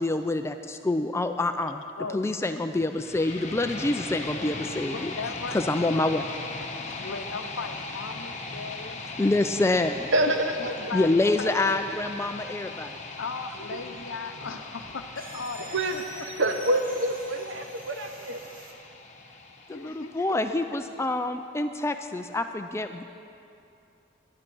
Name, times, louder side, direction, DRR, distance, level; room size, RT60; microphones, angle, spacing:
voice 1, 0.0-1.8 2.1-5.1 5.5-6.3 9.2-10.1 10.9-13.0 19.7-23.0, left 2 dB, 15° left, 8 dB, 0.3 m, -26 dB
voice 2, 2.0-2.5 4.9-5.7 6.6-9.0 10.6-11.1 11.4-11.5 13.2-16.5 19.7-20.4, left 4 dB, 75° left, 8 dB, 0.7 m, -37 dB
sound 1, 2.9-20.9, left 3 dB, 35° left, 1.0 m, -39 dB
voice 3, 10.1-10.7 13.7-13.8 15.7-18.4, right 1 dB, 60° right, 5 dB, 0.9 m, -27 dB
sound 2, 13.7-18.7, right 3 dB, 45° right, 1.3 m, -47 dB
11.5 x 10.0 x 6.1 m, 2.6 s
head